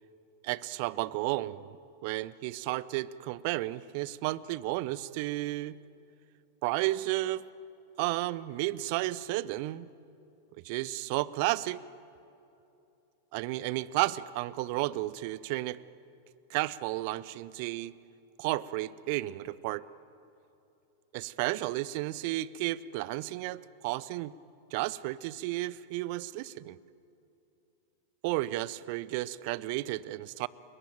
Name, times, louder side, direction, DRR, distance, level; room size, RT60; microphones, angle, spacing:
voice 1, 0.4-1.8 2.0-5.8 6.6-7.4 8.0-9.9 10.5-11.8 13.3-15.8 16.5-17.9 18.4-19.8 21.1-24.3 24.7-26.8 28.2-30.5, right 17 dB, 45° right, 20 dB, 0.7 m, -32 dB
29.5 x 22.0 x 9.0 m, 2.8 s
figure-of-eight pair, 90°, 0 cm